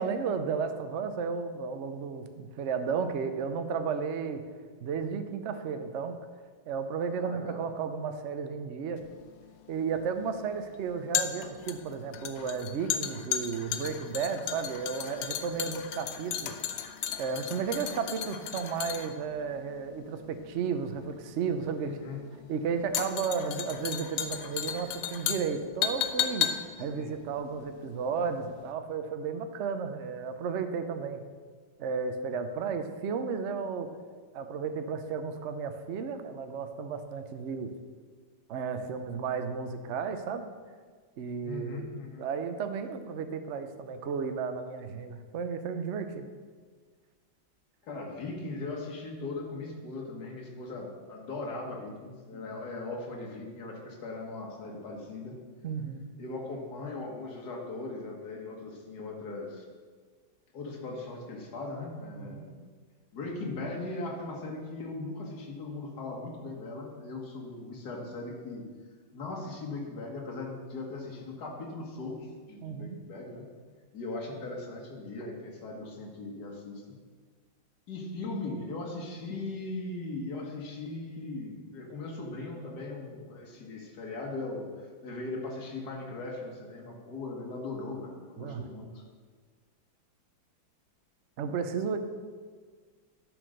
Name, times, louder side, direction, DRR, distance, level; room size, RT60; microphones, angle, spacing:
voice 1, 0.0-4.4 4.8-6.2 6.7-9.0 9.7-16.5 17.2-22.0 22.5-26.5 26.8-31.2 31.8-33.9 34.3-37.7 38.5-40.5 41.2-41.9 42.2-46.3 52.3-52.5 55.6-56.1 62.1-62.5 72.6-73.0 88.4-88.7 91.4-92.0, right 6 dB, 70° right, 8 dB, 0.6 m, -33 dB
voice 2, 7.1-7.6 21.8-22.2 26.9-27.1 41.4-42.3 47.8-55.4 56.2-59.7 60.5-62.6 63.1-68.7 69.1-73.4 73.9-77.0 77.9-89.0, left 2 dB, 55° left, 0 dB, 2.0 m, -39 dB
sound 1, 9.0-28.3 28.5-28.7, left 10 dB, 80° left, 1.4 m, -35 dB
11.0 x 5.0 x 6.4 m, 1.5 s
omnidirectional pair, 2.2 m